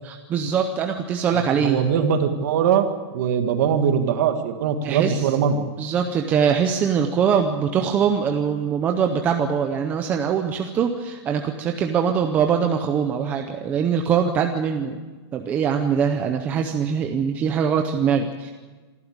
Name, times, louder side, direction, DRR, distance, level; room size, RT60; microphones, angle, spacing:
voice 1, 0.0-1.8 4.8-5.3 5.8-15.0 15.3-18.5, right 7 dB, 10° right, 4 dB, 0.6 m, -22 dB
voice 2, 1.6-2.9 3.1-5.6, right 7 dB, 35° right, 7 dB, 1.8 m, -21 dB
26.5 x 12.0 x 8.7 m, 1.3 s
hypercardioid pair, 175°, 15 cm